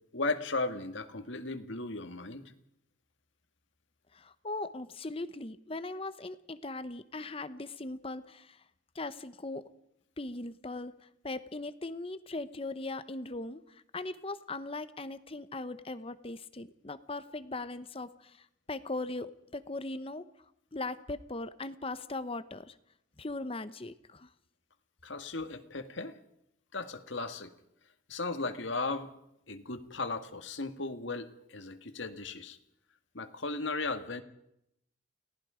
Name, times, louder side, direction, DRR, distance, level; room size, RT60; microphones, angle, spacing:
voice 1, 0.1-2.4 25.0-26.2 26.7-27.5 28.1-29.1 29.5-32.6 33.1-34.2, left 3 dB, 70° left, 7 dB, 1.9 m, -36 dB
voice 2, 4.1-8.6 8.9-9.7 10.2-20.2 20.7-22.8 23.2-24.3, left 2 dB, 30° left, 13 dB, 0.9 m, -39 dB
29.5 x 18.5 x 5.1 m, 0.77 s
head